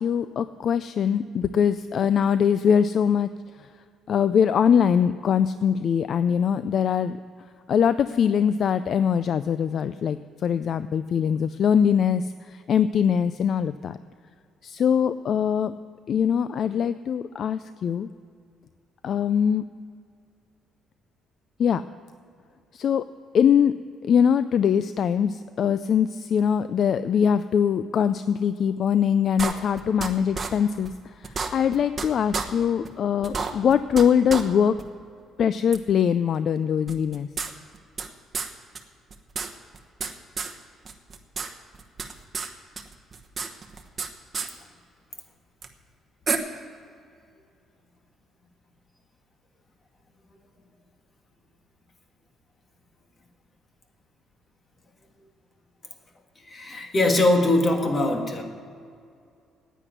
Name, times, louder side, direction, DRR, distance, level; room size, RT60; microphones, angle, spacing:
voice 1, 0.0-3.3 3.6-3.7 4.1-7.2 7.7-14.0 14.6-15.7 16.1-18.1 19.0-19.7 21.6-21.8 22.7-23.1 23.3-23.7 24.0-34.8 35.4-37.3, left 7 dB, 50° left, 13 dB, 0.3 m, -22 dB
sound 1, 29.4-30.1 30.3-30.5 30.8-30.9 31.2-32.0 32.3-32.4 32.8-32.9 33.2-34.0 34.3-34.4 34.8-34.9 35.7-35.8 36.9-38.1 38.3-38.5 38.7-38.8 39.1-40.1 40.4-40.5 40.8-41.5 41.7-42.5 42.7-44.1 44.3-44.5 45.6-45.7 46.3-46.4, right 5 dB, 30° right, 1.1 m, -30 dB
voice 2, 56.4-58.4, left 2 dB, 30° left, 4 dB, 1.7 m, -22 dB
9.9 x 9.2 x 9.2 m, 2.3 s
cardioid pair, 125°, 0 cm